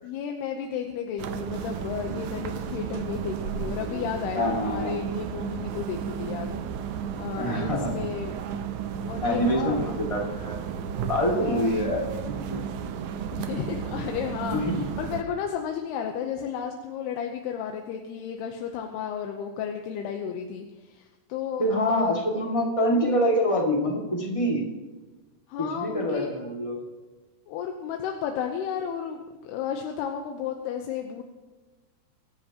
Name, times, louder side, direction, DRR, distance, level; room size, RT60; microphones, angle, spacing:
voice 1, 0.0-6.5 6.9-8.4 9.1-9.9 11.3-11.7 13.3-22.1 25.5-26.3 27.5-31.2, left 8 dB, 85° left, 3 dB, 3.0 m, -33 dB
sound 1, 1.2-15.2, right 7 dB, 85° right, 1.7 m, -33 dB
voice 2, 4.3-4.9 7.4-7.9 9.2-10.6 11.1-12.6 14.5-14.9 21.6-24.7 25.6-26.8, equal, 15° left, -2 dB, 1.2 m, -25 dB
24.5 x 13.0 x 3.0 m, 1.2 s
omnidirectional pair, 4.6 m